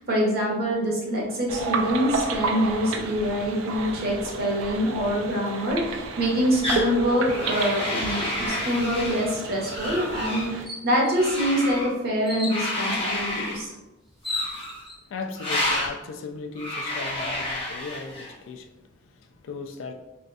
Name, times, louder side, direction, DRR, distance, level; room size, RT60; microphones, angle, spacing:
voice 1, 0.0-13.7, equal, 55° right, 0.7 m, -25 dB
sound 1, 1.5-10.7, right 4 dB, 85° right, 0.3 m, -32 dB
sound 2, 6.6-6.9 7.3-9.3 9.7-10.5 11.1-11.9 12.5-13.6 14.3-14.8 15.4-15.9 16.6-18.3, left 1 dB, 30° left, 0.8 m, -30 dB
sound 3, 9.6-9.8 10.2-10.3 10.7-11.2 12.2-12.6 13.7-13.8 14.1-15.0, left 2 dB, ahead, 0.4 m, -33 dB
voice 2, 15.0-19.9, left 4 dB, 75° left, 0.3 m, -37 dB
2.5 x 2.4 x 2.2 m
head